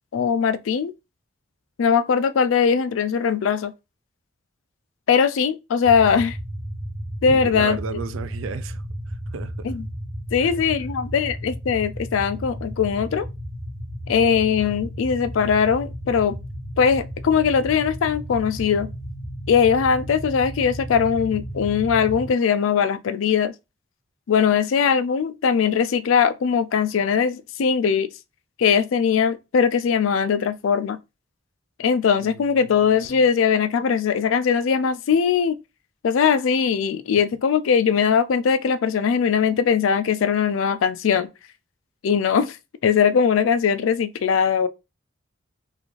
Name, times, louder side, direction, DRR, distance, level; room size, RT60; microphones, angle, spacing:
voice 1, 0.1-0.9 1.8-3.7 5.1-6.4 7.2-7.8 9.6-9.9 10.3-13.3 14.1-16.4 16.8-18.9 19.5-23.5 24.3-28.1 28.6-31.0 31.8-35.5 36.0-41.3 42.0-42.6 42.8-44.7, left 6 dB, 75° left, 0.4 m, -20 dB
sound 1, 5.8-22.3, equal, 55° right, 0.9 m, -34 dB
voice 2, 7.3-9.7 10.4-10.5 32.2-33.3, right 5 dB, 75° right, 0.4 m, -35 dB
3.7 x 2.4 x 3.1 m
head